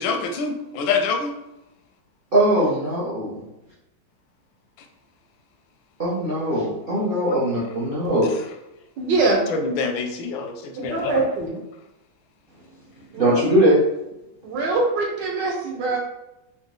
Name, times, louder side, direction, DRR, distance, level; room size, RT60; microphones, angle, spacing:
voice 1, 0.0-1.3 9.5-11.3, left 4 dB, 90° left, 4 dB, 1.4 m, -26 dB
voice 2, 2.3-3.4 6.0-8.3 13.2-13.8, right 1 dB, 45° right, -6 dB, 0.7 m, -20 dB
voice 3, 9.0-9.4 10.8-11.6 13.1-13.4 14.4-16.0, right 3 dB, 70° right, -1 dB, 1.5 m, -23 dB
4.0 x 2.8 x 3.7 m, 0.93 s
omnidirectional pair, 2.1 m